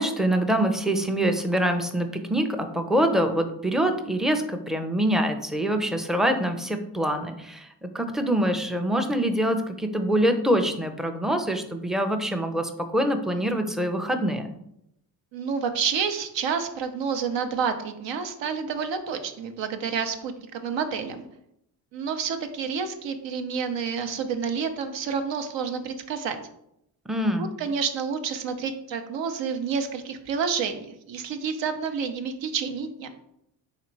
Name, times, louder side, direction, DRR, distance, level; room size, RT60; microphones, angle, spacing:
voice 1, 0.0-14.5 27.1-27.5, right 1 dB, ahead, 6 dB, 0.5 m, -25 dB
voice 2, 15.3-21.2 21.9-26.4 27.4-33.1, right 6 dB, 60° right, 7 dB, 0.8 m, -29 dB
3.6 x 2.9 x 4.5 m, 0.78 s
supercardioid pair, 55°, 50 cm